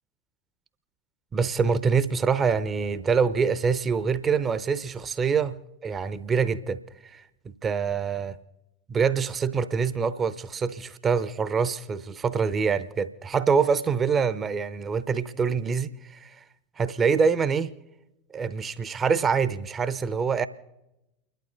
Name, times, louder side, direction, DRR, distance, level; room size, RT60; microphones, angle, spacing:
voice 1, 1.3-6.8 7.1-7.2 7.6-8.4 8.9-16.4 16.8-17.7 18.3-20.5, right 5 dB, 25° right, 0.8 m, -25 dB
30.0 x 11.5 x 3.9 m
figure-of-eight pair, 80°, 0 cm